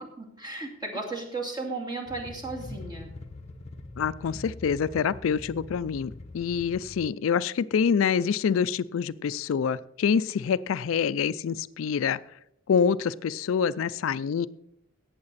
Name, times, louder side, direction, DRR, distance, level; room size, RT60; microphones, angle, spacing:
voice 1, 0.2-3.1, right 3 dB, 20° right, 0 dB, 2.4 m, -35 dB
sound 1, 2.1-7.1, left 2 dB, 35° left, 0.9 m, -43 dB
voice 2, 4.0-12.2 12.7-14.5, left 6 dB, 80° left, 16 dB, 0.4 m, -26 dB
17.5 x 7.4 x 4.1 m, 0.79 s
head